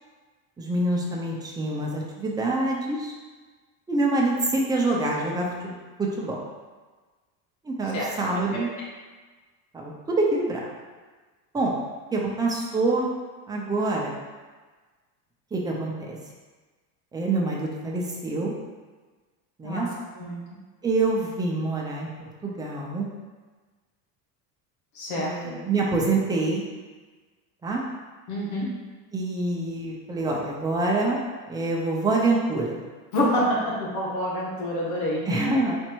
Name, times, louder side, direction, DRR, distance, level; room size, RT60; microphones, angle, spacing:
voice 1, 0.6-3.1 3.9-6.4 7.6-8.7 9.7-10.6 11.5-11.7 12.1-13.1 13.5-14.1 15.5-16.2 17.1-18.5 19.6-19.9 20.8-23.1 25.2-26.6 27.6-27.8 29.1-31.2 31.5-32.8 35.3-35.8, right 2 dB, 10° right, -3 dB, 0.5 m, -26 dB
voice 2, 24.9-25.3 28.3-28.7 33.1-35.2, equal, 85° left, -5 dB, 1.4 m, -26 dB
4.4 x 2.5 x 4.5 m, 1.4 s
cardioid pair, 150°, 40 cm